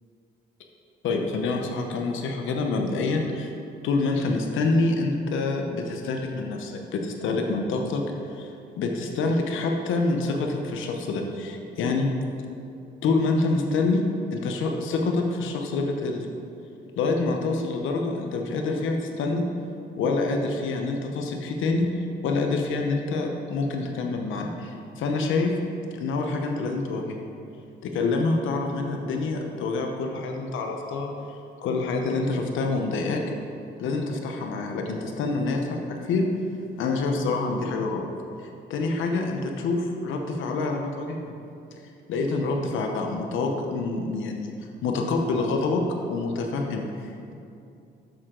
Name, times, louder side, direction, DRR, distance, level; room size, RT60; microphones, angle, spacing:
voice 1, 1.0-3.5 3.8-8.0 8.3-8.5 8.8-12.1 13.0-14.0 14.3-16.3 17.0-19.4 20.0-25.5 25.9-27.2 27.8-31.1 31.6-33.2 33.8-36.3 36.8-38.0 38.7-41.3 41.7-41.8 42.1-44.5 44.8-45.8 46.1-47.4, left 3 dB, 80° left, 3 dB, 0.9 m, -26 dB
9.1 x 6.5 x 3.9 m, 2.6 s
cardioid pair, 90°, 20 cm